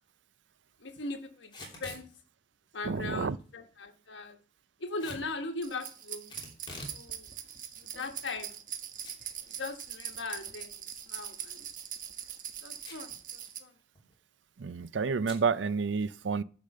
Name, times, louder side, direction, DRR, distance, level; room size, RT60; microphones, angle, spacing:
voice 1, 0.8-2.1 2.7-4.4 4.8-6.3 6.9-7.3 7.8-8.6 9.5-11.7 12.6-13.8, left 3 dB, 85° left, 1.3 m, -40 dB
Packing tape duct tape / Tearing, 1.4-2.1 5.0-5.3 6.3-7.0 7.4-7.5 8.2-8.8 9.0-9.1 9.5-9.6 11.6-11.9 12.8-13.2 13.5-13.6 13.8-14.1 15.2-15.4, left 1 dB, 25° left, 3.0 m, -45 dB
voice 2, 2.9-3.4 14.6-16.4, right 5 dB, 85° right, 0.5 m, -30 dB
sound 1, 5.6-13.6, right 9 dB, 45° right, 1.2 m, -42 dB
10.0 x 5.2 x 6.6 m
head